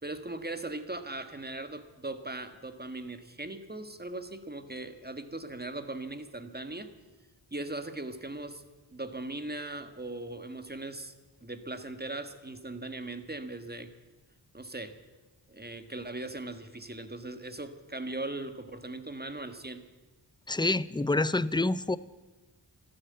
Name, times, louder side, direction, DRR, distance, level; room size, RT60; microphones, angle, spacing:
voice 1, 0.0-6.9 7.5-8.6 8.9-11.1 11.4-13.9 14.5-15.0 15.5-19.8, right 2 dB, 20° right, 9 dB, 1.7 m, -39 dB
voice 2, 20.5-22.0, left 2 dB, 10° left, 17 dB, 0.6 m, -27 dB
13.5 x 12.5 x 8.8 m, 1.2 s
cardioid pair, 45°, 45 cm